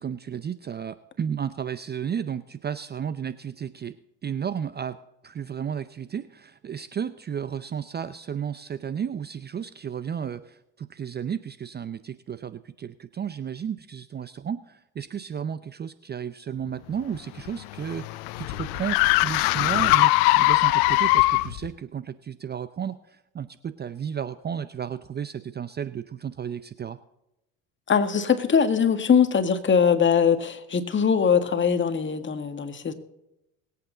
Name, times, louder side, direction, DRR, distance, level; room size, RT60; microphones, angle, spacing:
voice 1, 0.0-4.0 4.2-5.0 5.2-27.0, right 8 dB, 25° right, 14 dB, 0.6 m, -33 dB
sound 1, 17.1-21.7, left 20 dB, 70° left, 0.8 m, -21 dB
voice 2, 27.9-32.9, left 6 dB, 30° left, 8 dB, 1.8 m, -21 dB
21.5 x 8.6 x 3.9 m, 0.87 s
supercardioid pair, 85°, 38 cm